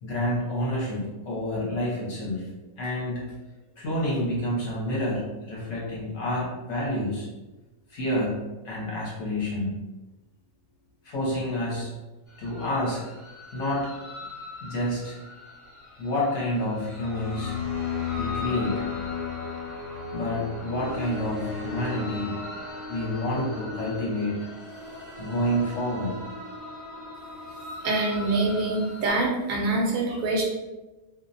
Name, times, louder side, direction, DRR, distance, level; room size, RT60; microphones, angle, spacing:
voice 1, 0.0-2.5 2.8-3.2 3.8-7.3 7.9-9.7 11.0-11.9 12.4-13.1 13.5-14.3 14.6-15.2 16.0-17.5 18.2-18.8 20.1-22.4 22.9-24.4 25.2-26.1, left 1 dB, 65° left, -5 dB, 1.0 m, -29 dB
sound 1, 12.3-29.1, left 4 dB, 35° left, 1.0 m, -36 dB
voice 2, 27.8-30.4, right 2 dB, 75° right, -2 dB, 1.0 m, -25 dB
2.5 x 2.0 x 2.6 m, 1.1 s
omnidirectional pair, 1.5 m